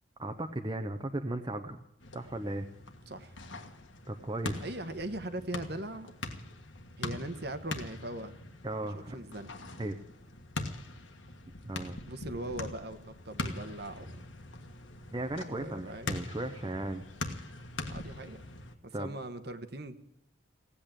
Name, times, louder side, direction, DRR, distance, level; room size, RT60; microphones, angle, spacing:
voice 1, 0.2-1.8 2.1-2.7 4.1-4.7 8.6-9.2 9.8-10.0 11.6-12.0 15.1-17.0 18.9-19.1, right 1 dB, 20° right, 5 dB, 0.7 m, -36 dB
sound 1, 2.0-18.7, left 2 dB, 70° left, 1.5 m, -42 dB
voice 2, 3.1-3.4 4.6-6.1 7.0-8.3 8.9-9.5 12.1-14.2 15.4-16.3 17.9-18.4 18.8-20.0, right 1 dB, 55° right, 9 dB, 1.2 m, -40 dB
17.5 x 8.5 x 8.9 m, 0.79 s
head